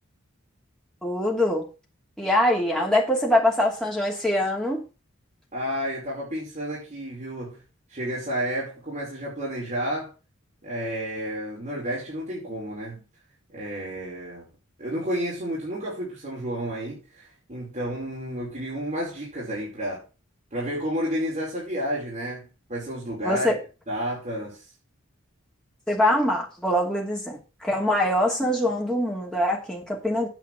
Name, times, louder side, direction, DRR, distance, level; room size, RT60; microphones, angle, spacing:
voice 1, 1.0-1.7 2.2-4.9 23.2-23.6 25.9-30.3, left 1 dB, 5° left, 2.6 m, -23 dB
voice 2, 5.5-7.6 7.9-10.1 10.6-13.0 13.5-14.5 14.8-20.0 20.5-23.5 23.9-24.6, equal, 35° right, 5.1 m, -31 dB
9.4 x 6.0 x 6.1 m
head